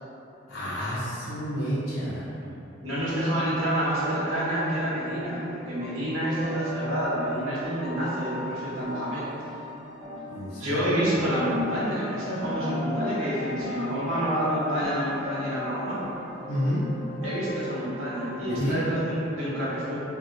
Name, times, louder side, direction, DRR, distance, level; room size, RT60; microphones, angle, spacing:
voice 1, 0.5-2.3 10.3-10.9 16.5-16.8 18.6-18.8, equal, 80° left, -11 dB, 0.6 m, -29 dB
voice 2, 2.8-9.2 10.6-16.0 17.2-20.0, equal, 85° right, -8 dB, 0.9 m, -28 dB
sound 1, 3.9-18.7, left 2 dB, 30° right, 0.6 m, -38 dB
2.7 x 2.0 x 3.8 m, 2.8 s
head